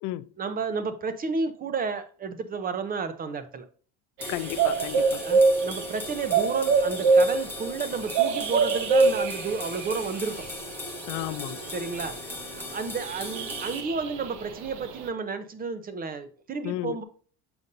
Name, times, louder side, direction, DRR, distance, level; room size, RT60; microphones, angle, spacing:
voice 1, 0.4-3.7 5.2-10.5 11.7-12.2 12.5-17.0, right 5 dB, 30° right, 0.7 m, -32 dB
sound 1, 4.2-13.8, left 2 dB, 5° left, 0.9 m, -39 dB
sound 2, 4.2-12.4 13.0-15.1, right 4 dB, 70° right, 0.9 m, -25 dB
voice 2, 4.3-5.2 11.1-11.6 16.6-17.0, left 16 dB, 75° left, 0.4 m, -33 dB
6.9 x 5.2 x 2.6 m
cardioid pair, 135°, 31 cm